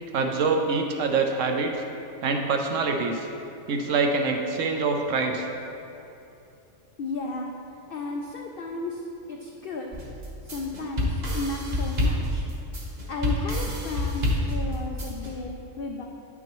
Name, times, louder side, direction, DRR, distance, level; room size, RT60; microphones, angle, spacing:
voice 1, 0.1-1.7 2.2-3.3 3.7-5.5, right 4 dB, 70° right, 3 dB, 0.9 m, -25 dB
voice 2, 7.0-7.5 7.9-9.0 9.3-10.0 10.4-12.4 13.1-16.0, left 3 dB, 80° left, 1 dB, 0.5 m, -33 dB
sound 1, 9.9-15.3, left 1 dB, 35° right, 0.9 m, -28 dB
8.8 x 6.0 x 3.0 m, 2.8 s
omnidirectional pair, 1.5 m